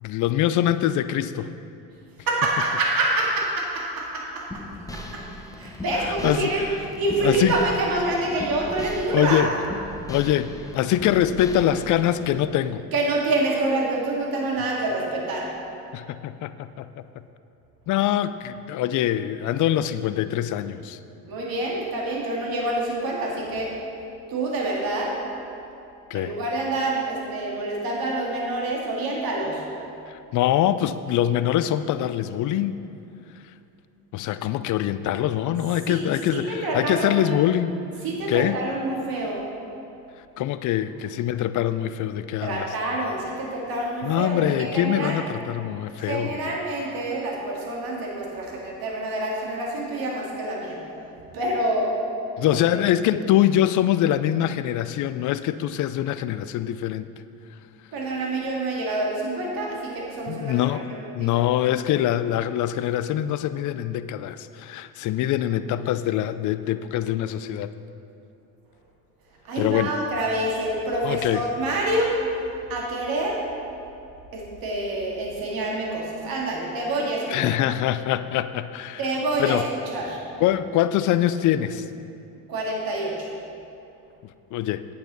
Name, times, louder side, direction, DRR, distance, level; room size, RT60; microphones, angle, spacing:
voice 1, 0.0-1.5 6.0-6.5 7.2-7.6 9.1-9.5 10.1-12.8 15.9-16.9 17.9-21.0 26.1-26.3 30.1-32.8 34.1-37.8 38.3-38.6 40.4-42.7 44.0-46.6 52.4-57.1 60.3-60.9 61.1-67.7 69.6-69.9 71.0-71.4 77.3-79.0 79.4-79.6 80.4-81.9 84.5-84.8, left 12 dB, 40° left, 13 dB, 0.5 m, -24 dB
voice 2, 2.3-4.6 4.9-5.2 5.6-6.7 7.0-9.4 12.9-15.5 21.2-23.7 24.3-25.1 26.1-29.6 35.9-37.4 38.0-39.4 42.4-45.2 46.0-50.8 51.3-51.9 52.4-52.8 57.9-61.4 69.4-72.2 72.7-73.4 74.3-77.4 79.0-79.6 79.9-80.2 82.5-83.3, right 2 dB, 45° right, -2 dB, 2.1 m, -27 dB
sound 1, 4.5-12.3, left 1 dB, 5° left, 0.9 m, -38 dB
8.9 x 8.6 x 4.0 m, 2.7 s
hypercardioid pair, 70°, 47 cm